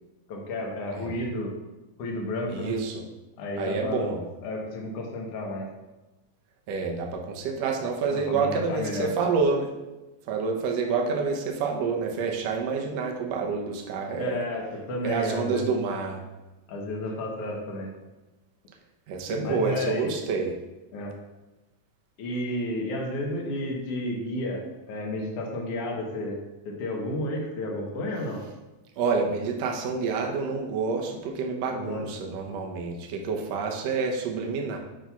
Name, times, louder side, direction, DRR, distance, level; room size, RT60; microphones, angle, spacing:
voice 1, 0.3-1.5 2.0-2.8 3.4-4.1 4.4-5.7 8.1-9.1 14.2-15.7 16.7-17.9 19.4-20.1 20.9-21.1 22.2-26.4 26.7-28.4 31.7-32.0, left 1 dB, 60° left, 0 dB, 1.8 m, -32 dB
voice 2, 2.5-3.0 3.6-4.2 6.7-9.7 10.3-14.4 15.0-16.2 19.1-20.6 29.0-34.8, right 4 dB, 70° right, 1 dB, 1.7 m, -28 dB
8.9 x 5.4 x 2.3 m, 1.1 s
omnidirectional pair, 3.6 m